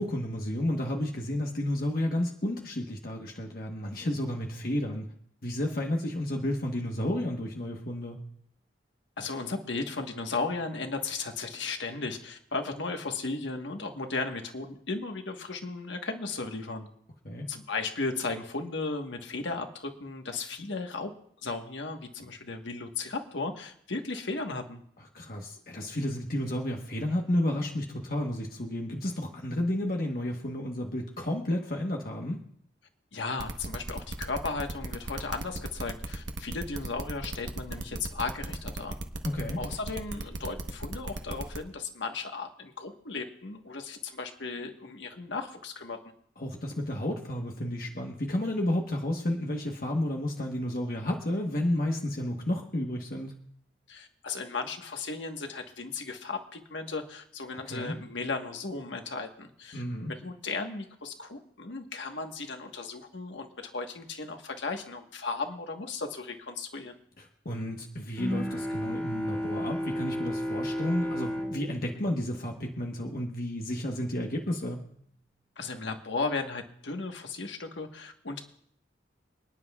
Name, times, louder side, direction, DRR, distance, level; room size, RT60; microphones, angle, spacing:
voice 1, 0.0-5.0 5.4-8.2 17.2-17.5 25.1-32.4 39.2-39.6 46.4-53.3 57.6-57.9 59.7-60.1 67.4-74.8, left 1 dB, 50° left, 1 dB, 1.2 m, -31 dB
voice 2, 9.2-16.9 17.5-21.1 21.4-24.8 33.1-39.0 39.6-46.0 53.9-59.8 60.1-66.9 75.6-78.4, left 3 dB, 90° left, 4 dB, 1.4 m, -35 dB
sound 1, 33.4-41.6, right 2 dB, 80° right, 1.2 m, -36 dB
Bowed string instrument, 68.2-73.3, equal, 10° left, 4.5 m, -34 dB
28.5 x 9.9 x 2.4 m, 0.67 s
head